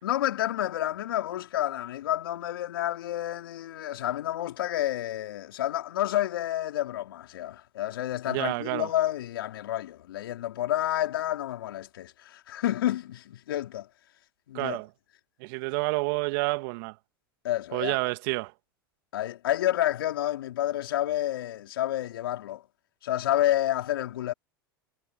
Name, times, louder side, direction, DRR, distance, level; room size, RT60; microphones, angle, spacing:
voice 1, 0.0-13.9 14.5-14.8 17.4-18.0 19.1-22.6 23.0-24.3, left 13 dB, 75° left, 4.2 m, -29 dB
voice 2, 8.3-8.9 14.5-14.9 15.4-17.0 17.7-18.5, right 26 dB, 65° right, 2.4 m, -29 dB
hypercardioid pair, 85°, 12 cm